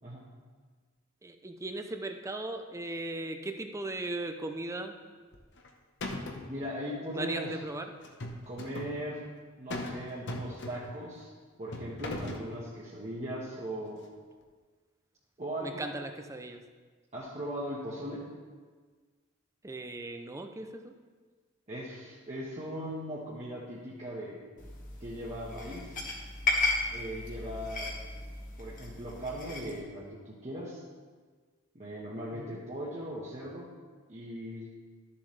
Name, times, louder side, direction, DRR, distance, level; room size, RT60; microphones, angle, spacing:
voice 1, 1.2-5.0 7.1-7.9 15.6-16.6 19.6-20.9 32.3-32.6, right 2 dB, 15° right, 6 dB, 0.5 m, -37 dB
sound 1, 5.3-5.7 6.0-6.5 8.0-9.0 9.7-10.0 10.3-11.0 11.7-12.5, left 1 dB, 60° left, 1.0 m, -38 dB
voice 2, 6.5-7.6 8.5-9.2 9.6-11.3 11.6-14.0 15.4-15.9 17.1-18.2 21.7-24.4 25.0-26.0 26.9-27.9 28.6-30.8 31.7-33.7 34.1-34.7, equal, 35° right, -7 dB, 1.3 m, -39 dB
sound 2, 24.6-29.8, left 3 dB, 40° left, 1.5 m, -35 dB
12.5 x 7.2 x 3.3 m, 1.5 s
head